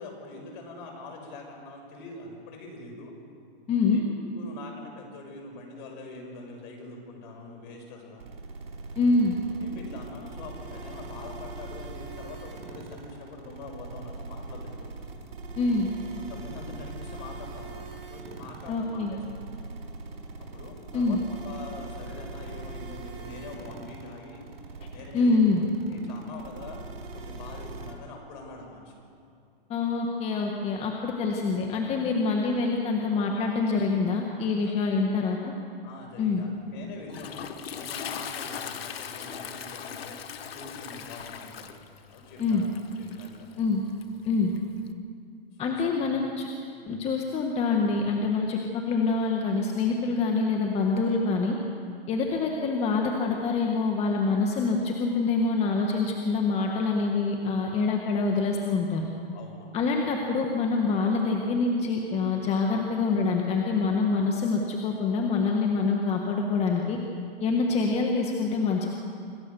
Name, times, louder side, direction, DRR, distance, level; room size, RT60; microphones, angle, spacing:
voice 1, 0.0-3.1 3.9-8.2 9.5-14.9 16.2-19.6 20.4-24.4 24.9-25.4 25.9-26.8 27.1-29.0 34.6-35.2 35.8-37.5 37.7-41.7 42.1-42.7 43.0-43.5 45.5-46.1 59.3-59.8, left 3 dB, 55° left, 2 dB, 6.0 m, -44 dB
voice 2, 3.7-4.0 9.0-9.3 15.6-15.9 18.7-19.1 20.9-21.2 25.1-25.6 29.7-35.5 36.2-36.4 42.4-42.6 43.6-43.8 44.2-44.5 45.6-46.5 46.9-48.6 48.9-51.6 52.1-59.1 59.7-67.0 67.4-68.9, left 4 dB, 20° left, 1 dB, 1.5 m, -25 dB
sound 1, 8.2-27.9, right 3 dB, 75° right, 4.8 m, -41 dB
Toilet flush, 36.6-44.9, left 7 dB, 90° left, 1.4 m, -40 dB
26.0 x 14.5 x 7.0 m, 2.4 s
hypercardioid pair, 145°, 29 cm